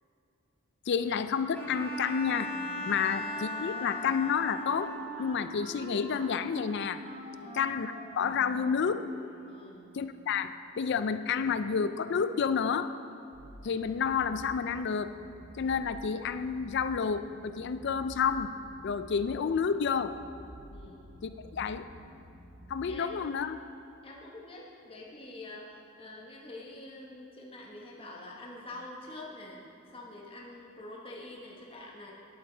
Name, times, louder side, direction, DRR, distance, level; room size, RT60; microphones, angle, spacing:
voice 1, 0.9-2.5 2.9-4.9 5.2-7.0 7.5-9.0 9.9-12.9 13.6-15.1 15.6-18.5 18.8-20.2 21.5-21.8 22.7-23.6, left 6 dB, 55° left, 12 dB, 0.4 m, -30 dB
Bowed string instrument, 1.5-5.3, left 1 dB, 10° left, 1.8 m, -38 dB
Wind instrument woodwind instrument, 2.3-9.8, right 1 dB, 30° right, 0.7 m, -46 dB
voice 2, 7.3-7.6 9.5-9.9 20.7-21.0 22.9-23.4 24.0-29.6 29.9-32.1, left 2 dB, 25° left, -3 dB, 1.0 m, -46 dB
sound 1, 13.3-22.9, equal, 75° right, 1.4 m, -50 dB
11.0 x 8.3 x 3.9 m, 2.8 s
head